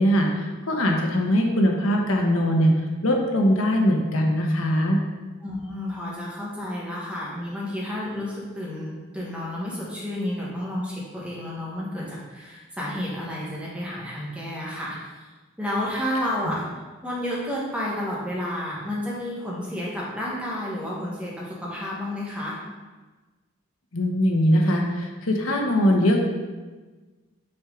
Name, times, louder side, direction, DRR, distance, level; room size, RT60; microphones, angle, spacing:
voice 1, 0.0-2.7 3.0-5.0 23.9-26.2, equal, 85° left, 1 dB, 1.0 m, -21 dB
voice 2, 5.4-15.2 15.6-16.6 17.0-22.5, left 1 dB, 5° right, -5 dB, 1.2 m, -31 dB
6.2 x 4.6 x 3.7 m, 1.3 s
head